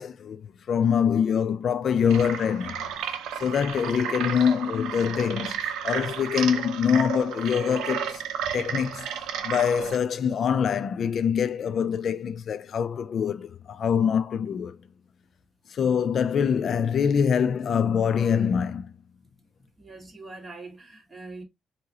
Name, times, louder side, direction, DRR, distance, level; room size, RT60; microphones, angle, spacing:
voice 1, 0.0-2.8 3.3-8.2 8.5-9.1 9.4-14.8 15.7-18.9, left 7 dB, 60° left, 0.3 m, -24 dB
sound 1, 2.0-10.0, right 8 dB, 85° right, 0.6 m, -33 dB
voice 2, 19.6-21.4, right 3 dB, 20° right, 1.7 m, -43 dB
4.7 x 2.5 x 2.7 m
cardioid pair, 90°, 0 cm